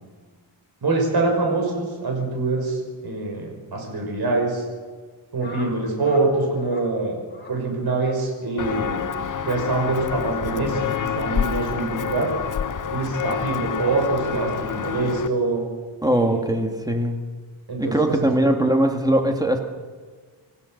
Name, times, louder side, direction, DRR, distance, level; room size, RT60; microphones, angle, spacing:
voice 1, 0.8-4.6 5.3-7.2 7.5-9.0 9.4-10.9 11.1-12.3 12.9-15.6 16.2-16.4 17.7-18.3, right 3 dB, 50° right, 1 dB, 6.2 m, -24 dB
sound 1, 5.4-6.3 6.6-6.9 7.3-7.6 8.0-8.2 8.8-9.1 9.8-10.0 10.9-11.2, left 2 dB, 20° left, 4.3 m, -42 dB
Walk footsteps, 8.6-15.3, left 8 dB, 40° left, 0.8 m, -28 dB
voice 2, 16.0-17.2 17.8-19.6, right 1 dB, 10° right, 4 dB, 1.9 m, -20 dB
27.0 x 15.0 x 6.6 m, 1.5 s
wide cardioid pair, 135°, 47 cm